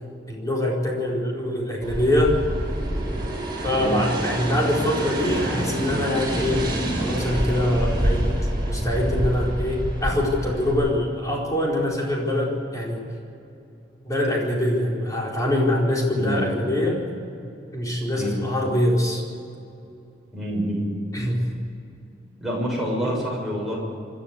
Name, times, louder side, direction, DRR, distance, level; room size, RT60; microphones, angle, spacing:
voice 1, 0.3-2.4 3.6-6.7 7.0-8.3 8.7-13.0 14.0-17.0 17.7-19.2 21.1-21.5 23.0-23.1, left 1 dB, 20° left, -3 dB, 4.6 m, -24 dB
sound 1, 1.8-10.7, right 1 dB, 25° right, 6.0 m, -27 dB
voice 2, 16.2-16.5 18.1-18.4 20.3-20.9 22.4-23.8, equal, ahead, -4 dB, 6.4 m, -27 dB
26.0 x 12.5 x 8.3 m, 2.7 s
head